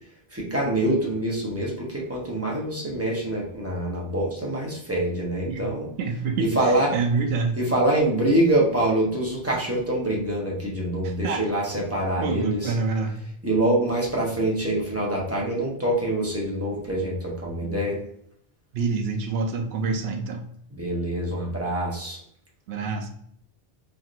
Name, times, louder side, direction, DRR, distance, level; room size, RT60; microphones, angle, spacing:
voice 1, 0.3-5.9 6.4-7.0 7.5-12.8 13.4-18.0 20.7-22.2, right 1 dB, 15° right, -3 dB, 0.8 m, -25 dB
voice 2, 6.0-6.5 6.9-7.6 11.0-11.5 12.2-13.2 17.6-17.7 18.7-20.4 22.7-23.1, right 4 dB, 80° right, 4 dB, 0.8 m, -26 dB
3.3 x 2.7 x 2.4 m, 0.66 s
omnidirectional pair, 1.0 m